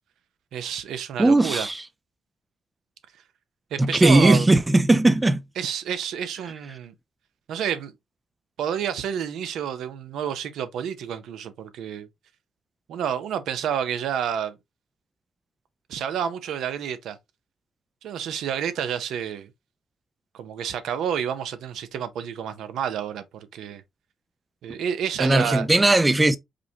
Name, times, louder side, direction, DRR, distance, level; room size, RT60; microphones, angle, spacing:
voice 1, 0.5-1.7 3.7-4.5 5.6-6.9 7.5-7.9 8.6-12.1 12.9-14.6 15.9-17.2 18.0-19.5 20.3-23.8 24.6-25.7, right 8 dB, 80° right, 0.6 m, -29 dB
voice 2, 1.2-1.8 3.8-5.4 25.2-26.4, right 2 dB, 15° right, 0.3 m, -18 dB
5.0 x 2.2 x 2.7 m
cardioid pair, 90°, 0 cm